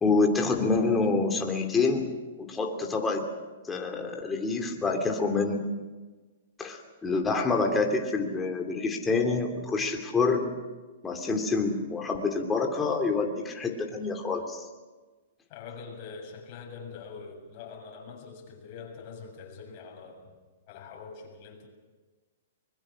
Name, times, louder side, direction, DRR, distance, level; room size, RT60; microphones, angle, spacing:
voice 1, 0.0-2.1 2.4-3.2 3.7-5.6 6.6-10.5 11.0-14.6, left 4 dB, 15° left, 3 dB, 2.9 m, -27 dB
voice 2, 15.5-20.4 20.7-21.7, left 5 dB, 40° left, 1 dB, 7.2 m, -44 dB
24.5 x 22.0 x 6.4 m, 1.3 s
hypercardioid pair, 140°, 0 cm